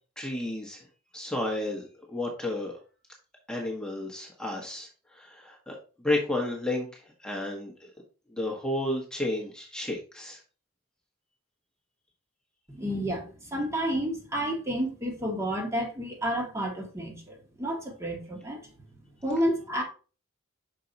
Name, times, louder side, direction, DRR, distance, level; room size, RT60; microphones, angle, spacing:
voice 1, 0.2-0.9 1.1-2.7 3.5-7.9 8.3-10.4, left 1 dB, 5° left, 1.2 m, -32 dB
voice 2, 12.7-18.6 19.2-19.8, equal, 15° right, 1.3 m, -30 dB
5.9 x 4.6 x 4.0 m
head